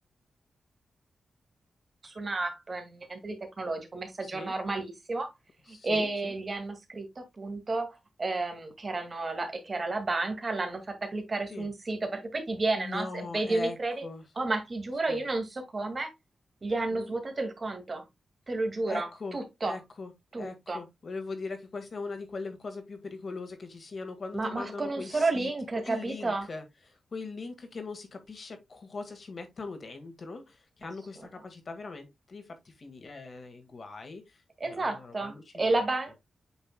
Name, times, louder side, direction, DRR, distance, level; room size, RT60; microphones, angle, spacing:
voice 1, 2.0-5.3 5.7-14.1 14.4-16.1 16.6-18.1 18.5-19.8 20.3-20.8 24.3-26.5 34.6-36.2, right 2 dB, 35° right, 2.0 m, -31 dB
voice 2, 4.2-4.5 5.7-6.3 11.5-11.7 12.8-14.2 15.1-15.3 16.9-17.1 18.9-20.1 20.4-35.7, left 3 dB, 45° left, 1.8 m, -41 dB
8.6 x 5.4 x 2.2 m
wide cardioid pair, 125°, 0 cm